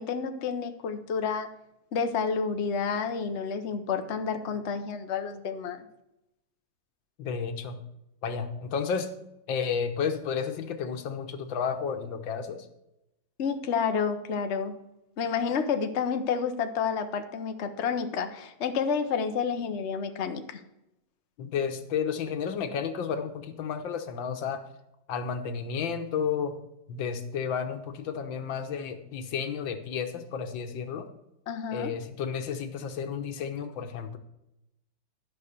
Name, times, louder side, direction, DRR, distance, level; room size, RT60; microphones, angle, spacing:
voice 1, 0.0-1.5 1.9-5.8 13.4-14.8 15.2-20.6 31.5-31.9, left 6 dB, 45° left, 7 dB, 1.0 m, -30 dB
voice 2, 7.2-7.8 8.2-9.1 9.5-12.7 21.4-24.6 25.1-26.5 26.9-31.1 31.7-34.2, left 6 dB, 85° left, 7 dB, 1.9 m, -32 dB
12.0 x 5.9 x 6.7 m, 0.87 s
omnidirectional pair, 2.0 m